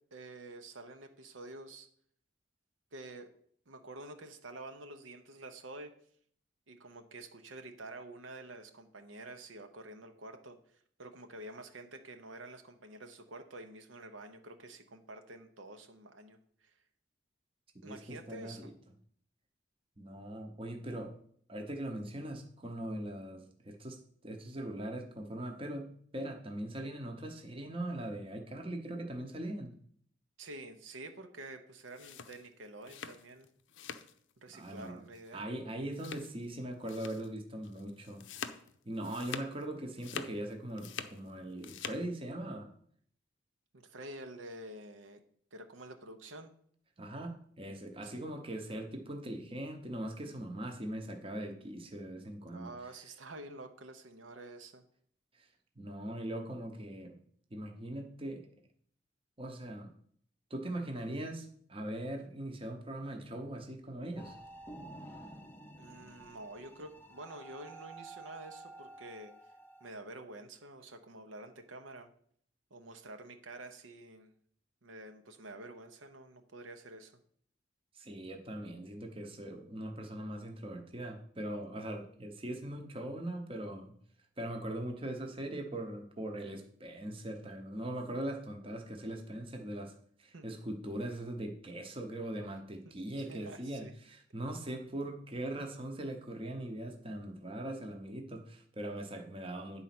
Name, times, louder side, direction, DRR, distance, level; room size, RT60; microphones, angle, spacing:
voice 1, 0.1-1.9 2.9-3.3 3.7-5.9 6.7-16.7 17.8-18.7 30.4-33.5 34.4-35.5 43.7-45.2 45.5-46.5 48.0-48.3 52.5-54.8 65.8-69.3 69.8-72.1 72.7-74.3 74.8-77.1 90.3-90.5 93.2-93.9, right 2 dB, 80° right, 6 dB, 0.9 m, -48 dB
voice 2, 17.7-18.7 20.0-21.2 21.5-29.7 34.5-35.0 35.3-38.3 38.8-42.7 47.0-52.7 55.3-55.5 55.8-57.2 57.5-58.5 59.4-59.9 60.5-64.4 77.9-84.0 84.4-99.8, right 1 dB, 25° right, 3 dB, 0.9 m, -41 dB
sound 1, 31.8-34.2 34.5-34.9 35.1-35.3 35.9-36.5 36.9-37.3 37.6-39.6 39.9-41.2 41.5-42.0, left 7 dB, 70° left, 0.5 m, -45 dB
sound 2, 64.2-69.9, right 2 dB, 10° left, 0.6 m, -51 dB
9.7 x 4.0 x 5.9 m, 0.62 s
head